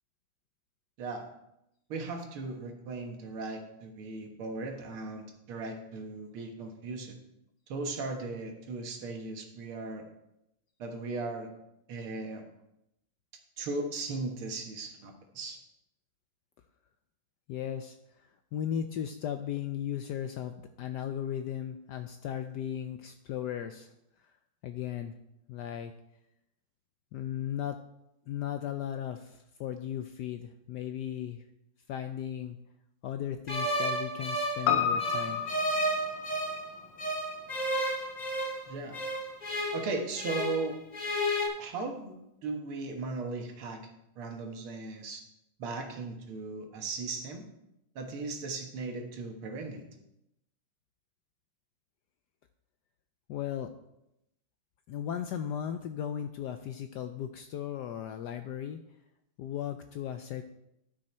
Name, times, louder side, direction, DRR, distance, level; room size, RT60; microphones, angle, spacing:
voice 1, 1.9-7.1 7.7-10.1 10.8-11.5 11.9-12.4 13.6-15.6 38.7-39.0 39.7-40.8 41.6-42.2 42.4-43.8 44.2-45.2 45.6-47.4 48.0-49.9, right 3 dB, 80° right, 3 dB, 2.2 m, -37 dB
voice 2, 17.5-23.9 24.2-24.3 24.6-25.1 25.5-25.9 27.1-27.8 28.3-31.4 31.9-32.6 33.0-35.4 53.3-53.7 54.9-58.8 59.4-60.4, left 10 dB, 80° left, 8 dB, 0.9 m, -36 dB
sound 1, 33.5-36.7 37.0-40.7 40.9-41.5, equal, 30° left, 0.8 m, -32 dB
Piano, 34.7-39.2 39.5-39.6, left 8 dB, 65° left, 1.5 m, -33 dB
11.5 x 6.3 x 4.4 m, 0.84 s
omnidirectional pair, 2.3 m